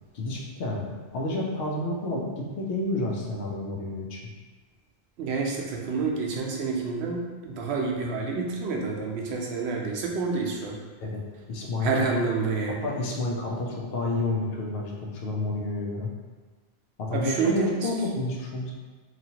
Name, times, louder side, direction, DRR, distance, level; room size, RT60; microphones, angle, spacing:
voice 1, 0.1-4.2 11.0-11.2 11.5-12.1 12.7-16.1 17.0-18.7, left 2 dB, 75° left, -2 dB, 0.8 m, -30 dB
voice 2, 5.2-10.8 11.8-12.8 17.1-17.8, right 4 dB, 90° right, -1 dB, 0.8 m, -28 dB
3.0 x 2.4 x 2.7 m, 1.3 s
omnidirectional pair, 1.1 m